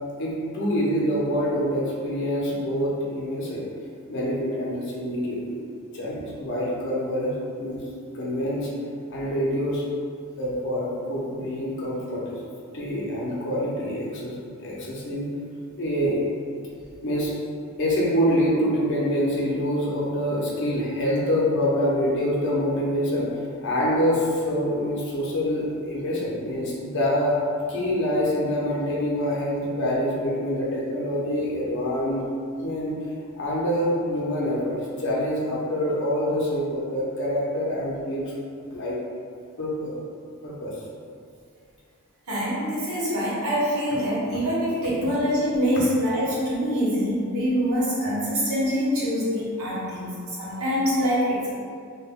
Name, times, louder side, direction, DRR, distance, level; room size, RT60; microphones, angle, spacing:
voice 1, 0.2-3.6 4.1-5.6 5.9-7.8 8.1-8.7 9.1-9.8 10.4-12.4 12.7-15.3 15.8-16.2 17.0-17.3 17.8-23.3 23.6-27.4 27.7-32.2 32.6-32.9 33.4-38.3 38.7-39.0 39.6-40.0 40.4-40.8, equal, 55° left, -5 dB, 0.5 m, -26 dB
voice 2, 42.3-50.1 50.4-51.5, equal, 85° right, -8 dB, 0.9 m, -24 dB
2.1 x 2.0 x 3.5 m, 2.3 s
head